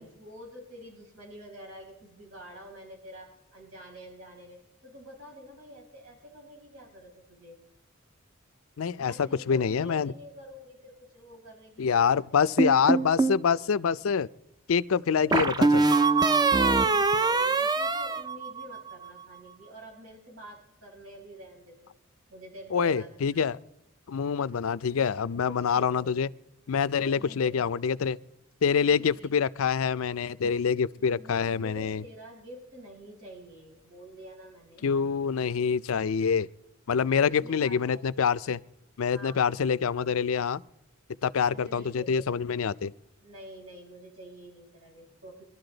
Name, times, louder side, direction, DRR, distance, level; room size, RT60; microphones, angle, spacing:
voice 1, 0.0-7.6 9.0-12.0 15.2-15.4 16.6-21.9 22.3-23.1 23.5-23.7 24.9-25.1 25.5-26.2 27.0-27.7 28.8-29.5 31.0-34.9 37.2-38.0 39.1-39.6 41.5-42.3 43.2-45.4, equal, 85° right, 5.4 m, -48 dB
voice 2, 8.8-10.1 11.8-14.3 14.7-15.9 22.7-23.6 24.1-26.3 26.7-28.2 28.6-32.0 34.8-36.5 36.9-38.6 39.0-40.6 41.2-42.9, left 6 dB, 85° left, 0.5 m, -26 dB
sound 1, 12.6-13.4 15.3-18.9, right 3 dB, 20° right, 0.5 m, -23 dB
23.5 x 12.5 x 3.9 m
head